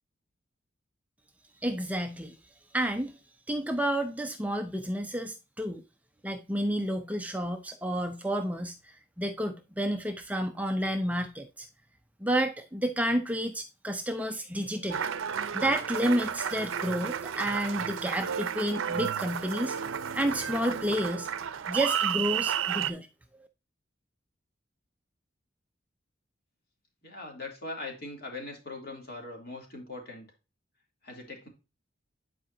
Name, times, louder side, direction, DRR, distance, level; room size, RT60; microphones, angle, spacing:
voice 1, 1.6-2.4 2.7-3.2 3.5-5.8 6.2-8.7 9.2-11.7 12.2-15.1 15.5-19.8 20.1-21.3 21.7-23.1, equal, 5° right, 0.5 m, -30 dB
Applause, 14.9-22.9, right 8 dB, 90° right, 0.5 m, -32 dB
voice 2, 27.0-30.3 31.0-31.5, left 2 dB, 50° left, 2.8 m, -41 dB
10.0 x 4.8 x 2.7 m
head